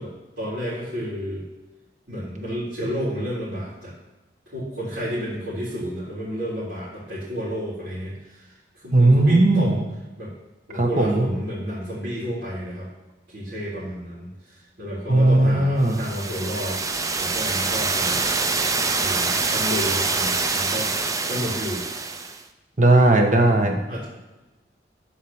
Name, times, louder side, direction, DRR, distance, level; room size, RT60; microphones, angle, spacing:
voice 1, 0.0-1.5 2.1-3.9 4.5-9.8 10.2-10.3 10.7-12.9 13.3-16.8 17.2-18.2 19.0-20.9 21.2-22.2 23.5-24.1, equal, 80° right, -10 dB, 3.6 m, -31 dB
voice 2, 8.9-9.7 10.7-11.3 15.1-16.0 22.8-23.8, right 2 dB, 45° right, 3 dB, 1.4 m, -17 dB
sound 1, 15.9-22.4, right 4 dB, 20° right, 0.5 m, -25 dB
10.5 x 4.8 x 7.2 m, 1.1 s
head